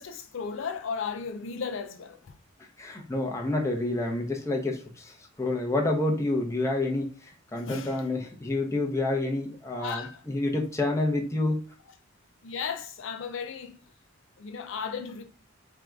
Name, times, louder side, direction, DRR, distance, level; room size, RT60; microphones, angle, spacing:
voice 1, 0.0-2.3 7.7-8.0 9.8-10.2 12.4-13.8 14.4-15.2, left 6 dB, 65° left, 0.5 m, -35 dB
voice 2, 2.8-11.6, left 2 dB, 15° left, 0.8 m, -28 dB
3.6 x 2.5 x 4.5 m
head